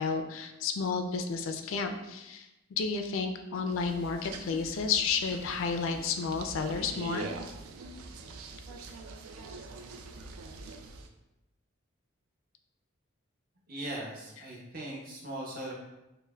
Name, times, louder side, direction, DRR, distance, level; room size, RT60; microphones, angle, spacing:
voice 1, 0.0-2.5 2.8-7.3, left 5 dB, 70° left, 6 dB, 0.3 m, -31 dB
sound 1, 3.7-11.1, right 3 dB, 80° right, 0.3 m, -44 dB
voice 2, 13.7-15.7, right 1 dB, 40° right, -3 dB, 0.7 m, -39 dB
5.4 x 2.1 x 2.3 m, 0.96 s
head